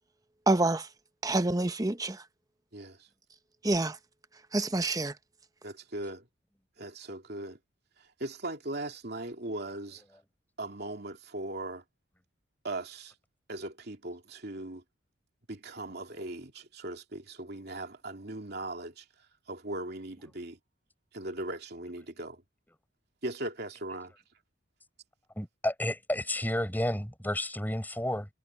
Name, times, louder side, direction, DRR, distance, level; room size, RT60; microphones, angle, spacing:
voice 1, 0.5-0.8 1.2-2.2 3.6-4.0 4.5-5.1, right 2 dB, 20° right, 0.8 m, -27 dB
voice 2, 2.7-3.1 5.6-6.2 6.8-7.6 8.0-10.0 10.6-11.8 12.6-13.1 13.5-14.8 15.5-19.0 19.5-20.6 21.1-22.4 23.2-24.1, right 2 dB, 55° right, 2.9 m, -39 dB
voice 3, 25.4-28.3, left 1 dB, 10° left, 7.0 m, -31 dB
head